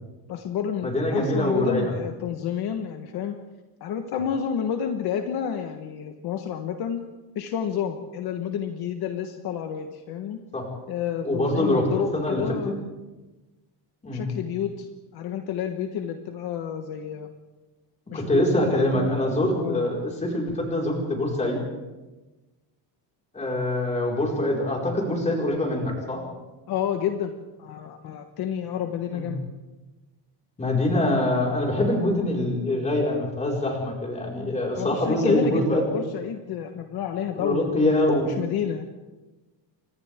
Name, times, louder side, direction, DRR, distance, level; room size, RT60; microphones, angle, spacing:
voice 1, 0.3-3.4 3.8-7.0 7.3-10.4 10.9-12.8 14.1-14.9 15.1-17.3 18.1-19.1 19.6-19.9 26.7-27.3 27.6-29.4 34.7-37.6 38.3-38.8, left 8 dB, 55° left, 5 dB, 1.4 m, -30 dB
voice 2, 0.8-1.9 10.5-10.7 11.2-12.7 14.0-14.3 18.1-21.6 23.3-26.2 29.1-29.3 30.6-35.8 37.3-38.4, left 1 dB, 15° left, -2 dB, 5.0 m, -24 dB
29.5 x 24.5 x 3.7 m, 1.1 s
cardioid pair, 180°, 45 cm